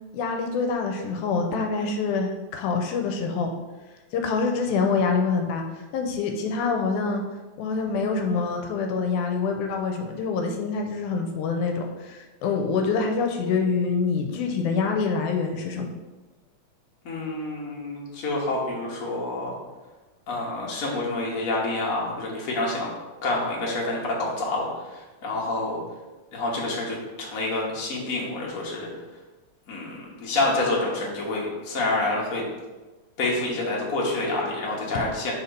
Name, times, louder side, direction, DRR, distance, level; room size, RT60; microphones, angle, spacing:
voice 1, 0.1-3.5 4.1-5.6 5.9-7.2 7.6-15.9, left 4 dB, 80° left, 4 dB, 2.0 m, -26 dB
voice 2, 17.0-19.5 20.3-22.9 23.2-25.8 26.3-28.9 29.7-32.4 33.2-35.3, left 2 dB, 60° left, -3 dB, 0.9 m, -28 dB
4.4 x 4.2 x 5.2 m, 1.2 s
omnidirectional pair, 3.6 m